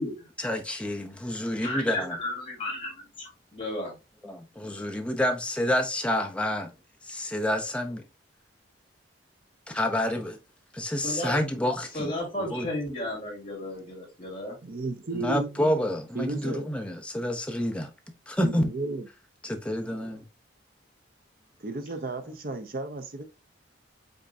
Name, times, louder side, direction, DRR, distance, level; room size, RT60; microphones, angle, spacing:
voice 1, 0.4-2.1 4.2-6.7 7.1-8.0 9.7-10.4 10.7-12.1 12.5-12.7 15.2-17.9 18.3-18.7 19.4-20.2, left 1 dB, 5° left, 0.7 m, -28 dB
voice 2, 1.6-4.0 11.0-11.4 11.8-14.6, left 1 dB, 25° left, 2.6 m, -34 dB
voice 3, 14.6-15.6 16.1-16.7 18.4-19.1 21.6-23.2, right 2 dB, 45° right, 0.6 m, -33 dB
5.3 x 3.7 x 2.6 m
head